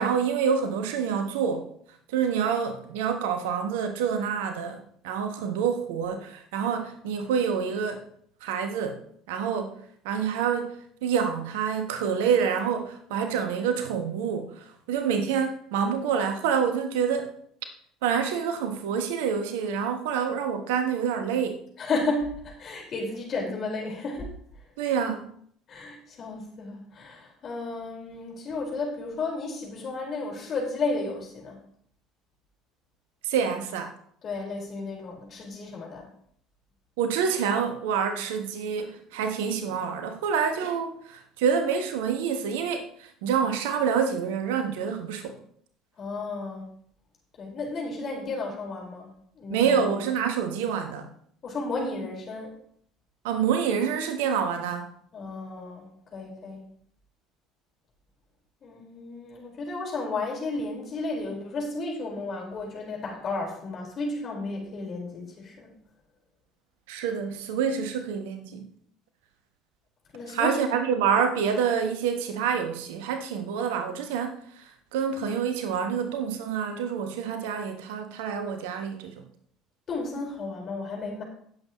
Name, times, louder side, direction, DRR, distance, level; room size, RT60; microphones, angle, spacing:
voice 1, 0.0-1.7 2.1-8.0 8.4-9.0 9.3-9.8 10.0-17.3 18.0-21.6 24.8-25.3 33.2-33.9 37.0-45.4 49.5-51.1 53.2-54.9 66.9-68.7 70.3-79.2, right 7 dB, 65° right, 7 dB, 1.2 m, -27 dB
voice 2, 21.8-24.3 25.7-31.6 34.2-36.1 46.0-46.6 47.4-49.1 49.3-49.9 51.4-52.6 55.1-55.8 56.1-56.6 58.6-65.7 70.1-70.6 79.9-81.2, left 3 dB, 40° left, -1 dB, 4.7 m, -33 dB
18.0 x 7.6 x 3.1 m, 0.64 s
figure-of-eight pair, 60°, 0 cm